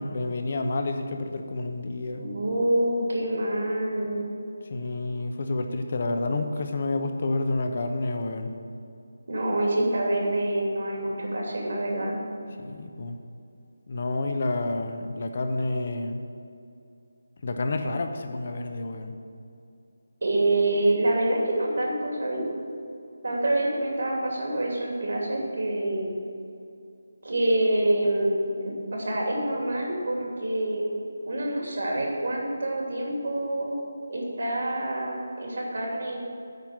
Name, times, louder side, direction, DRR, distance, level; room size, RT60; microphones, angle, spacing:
voice 1, 0.0-2.3 4.7-8.5 12.6-13.2 13.9-16.2 17.4-19.1, left 2 dB, 45° left, 6 dB, 0.9 m, -29 dB
voice 2, 2.2-4.2 9.3-12.2 20.2-22.4 23.2-26.1 27.2-30.8 31.3-33.8 34.1-36.2, right 1 dB, 60° right, -1 dB, 2.7 m, -26 dB
9.2 x 5.9 x 7.9 m, 2.6 s
figure-of-eight pair, 155°, 0 cm